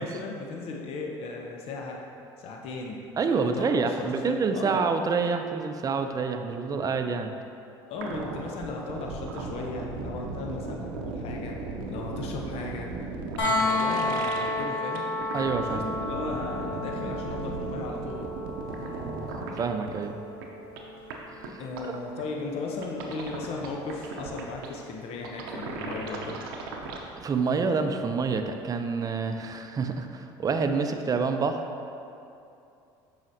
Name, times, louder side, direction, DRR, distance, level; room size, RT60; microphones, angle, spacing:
voice 1, 0.0-2.0 2.4-3.0 3.4-4.8 7.9-11.6 11.9-12.9 13.4-15.1 15.6-18.3 18.6-19.0 21.6-26.4, left 3 dB, 60° left, 0 dB, 0.7 m, -36 dB
voice 2, 3.2-7.3 15.3-15.9 19.0-19.3 19.5-20.2 21.4-21.6 27.2-31.6, right 5 dB, 30° right, 6 dB, 0.5 m, -27 dB
sound 1, 7.9-14.6 14.9-19.6 19.9-20.0 20.4-20.5 20.8-20.9 21.1-21.2 21.4-21.5 21.8-21.9 22.2-22.3 22.8-24.7 25.2-27.0, right 4 dB, 90° right, 0.6 m, -36 dB
sound 2, 13.4-25.2 27.1-27.2, left 1 dB, 85° left, 1.4 m, -33 dB
7.1 x 4.9 x 2.7 m, 2.7 s
supercardioid pair, 80°, 11 cm